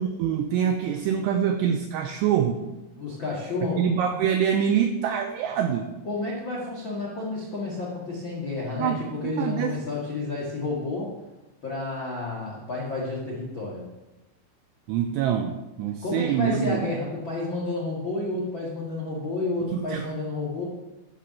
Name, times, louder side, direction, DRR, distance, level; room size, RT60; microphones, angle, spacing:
voice 1, 0.0-2.6 3.8-5.9 8.7-9.8 14.9-16.9 19.7-20.1, right 8 dB, 90° right, 5 dB, 2.4 m, -25 dB
voice 2, 3.0-3.8 6.0-11.1 11.6-13.8 16.0-20.6, left 3 dB, 55° left, -4 dB, 1.3 m, -30 dB
12.5 x 5.7 x 7.2 m, 1.1 s
omnidirectional pair, 5.7 m